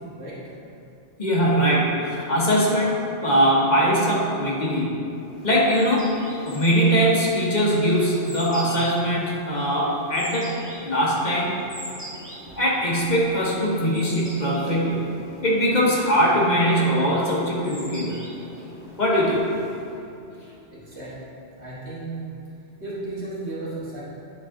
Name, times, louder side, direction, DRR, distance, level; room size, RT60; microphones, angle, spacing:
voice 1, 1.2-4.9 5.4-6.1 6.4-10.6 10.8-11.5 12.6-15.0 15.4-18.2 19.0-19.4, equal, 40° left, -5 dB, 1.1 m, -21 dB
sound 1, 5.1-20.1, right 1 dB, 20° right, 1.1 m, -42 dB
voice 2, 20.7-21.2 21.5-22.2 22.8-24.0, right 2 dB, 60° right, -8 dB, 1.8 m, -34 dB
8.9 x 4.3 x 3.7 m, 2.7 s
omnidirectional pair, 1.3 m